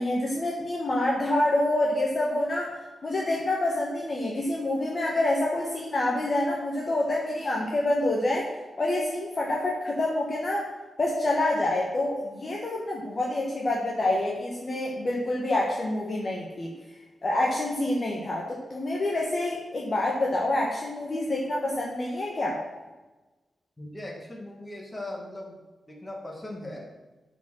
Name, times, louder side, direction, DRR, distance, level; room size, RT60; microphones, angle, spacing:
voice 1, 0.0-8.5 8.8-10.7 11.0-16.7 17.2-22.6, left 1 dB, 35° left, -3 dB, 1.4 m, -27 dB
voice 2, 23.8-25.6 25.9-26.8, left 1 dB, 15° left, -1 dB, 2.0 m, -39 dB
12.5 x 5.1 x 6.4 m, 1.1 s
wide cardioid pair, 165°, 0 cm